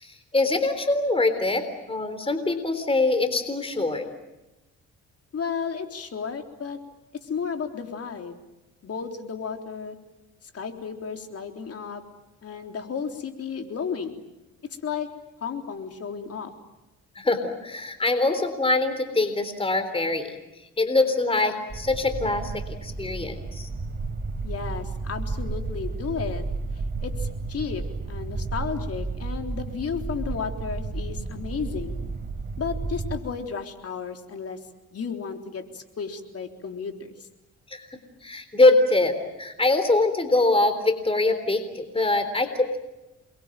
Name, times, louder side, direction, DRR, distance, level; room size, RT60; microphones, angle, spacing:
voice 1, 0.0-4.1 17.2-20.4 20.8-23.7 37.7-37.9 38.2-42.8, left 2 dB, 20° left, 9 dB, 3.7 m, -23 dB
voice 2, 5.3-6.8 7.2-8.4 8.8-10.0 10.5-12.0 12.4-14.2 14.8-15.1 15.4-16.5 24.4-26.4 27.0-32.0 32.6-34.6 34.9-37.1, left 6 dB, 50° left, 5 dB, 3.8 m, -33 dB
sound 1, 21.7-33.2, right 3 dB, 30° right, 4.5 m, -32 dB
29.0 x 22.5 x 9.1 m, 1.0 s
cardioid pair, 90°, 30 cm